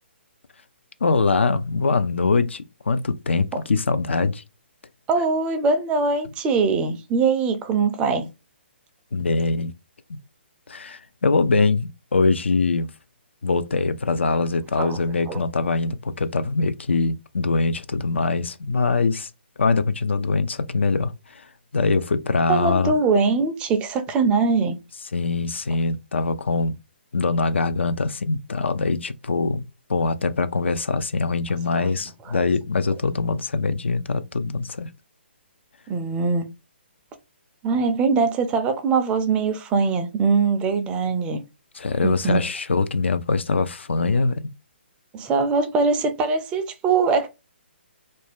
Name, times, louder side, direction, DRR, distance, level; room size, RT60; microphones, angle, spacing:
voice 1, 1.0-4.4 9.1-9.7 10.7-12.9 13.4-19.3 19.6-21.5 21.7-22.9 25.1-26.7 27.1-29.6 29.9-34.9 41.7-44.4, left 3 dB, 75° left, 0.4 m, -23 dB
voice 2, 5.1-8.3 14.8-15.0 15.3-15.4 22.5-24.8 32.3-32.4 35.9-36.5 37.6-41.4 42.0-42.4 45.1-47.3, right 4 dB, 15° right, 0.4 m, -22 dB
2.6 x 2.1 x 3.3 m
figure-of-eight pair, 135°, 6 cm